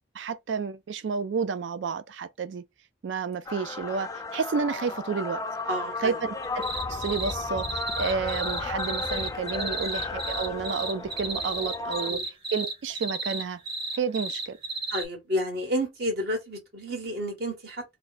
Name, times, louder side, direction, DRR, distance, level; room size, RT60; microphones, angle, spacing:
voice 1, 0.1-2.6 3.0-5.4 6.0-6.4 6.9-13.6 13.9-14.6, right 5 dB, 90° right, 0.4 m, -30 dB
sound 1, 3.5-12.1, left 3 dB, 20° left, 0.3 m, -34 dB
voice 2, 5.7-6.1 9.6-9.7 12.1-12.2 14.9-17.8, equal, 60° right, 1.4 m, -30 dB
sound 2, 6.4-7.3 7.6-15.1, right 3 dB, 30° right, 0.8 m, -33 dB
2.7 x 2.2 x 3.9 m
head